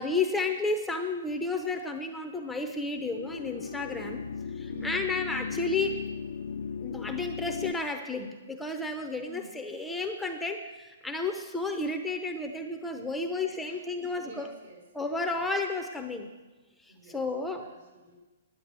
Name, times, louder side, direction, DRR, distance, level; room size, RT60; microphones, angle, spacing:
voice 1, 0.0-4.2 4.5-6.0 6.8-14.5 14.9-16.3 16.8-17.6, left 3 dB, 5° left, 4 dB, 0.7 m, -32 dB
sound 1, 2.7-7.7, left 6 dB, 85° left, 0.6 m, -37 dB
voice 2, 4.6-5.1 9.2-9.5 13.1-13.4 13.6-14.8 16.9-18.2, right 3 dB, 75° right, -1 dB, 5.5 m, -50 dB
10.5 x 9.7 x 7.5 m, 1.2 s
hypercardioid pair, 160°, 0 cm